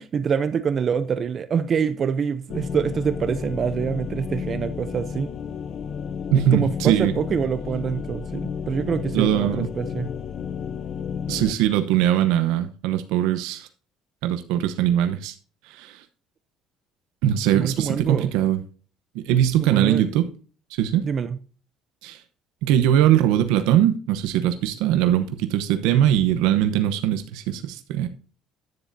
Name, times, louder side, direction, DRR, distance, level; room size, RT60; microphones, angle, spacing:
voice 1, 0.0-5.3 6.3-10.1 17.5-18.3 19.6-20.1 21.0-21.4, right 7 dB, 35° right, 0.6 m, -25 dB
sound 1, 2.5-11.5, left 6 dB, 45° left, 0.5 m, -32 dB
voice 2, 6.3-7.1 9.1-9.7 11.3-13.7 14.2-15.3 15.7-16.0 17.2-18.6 19.1-20.3 20.8-21.1 22.0-22.2 22.6-28.1, right 11 dB, 90° right, 0.9 m, -21 dB
10.5 x 9.7 x 2.7 m
cardioid pair, 135°, 0 cm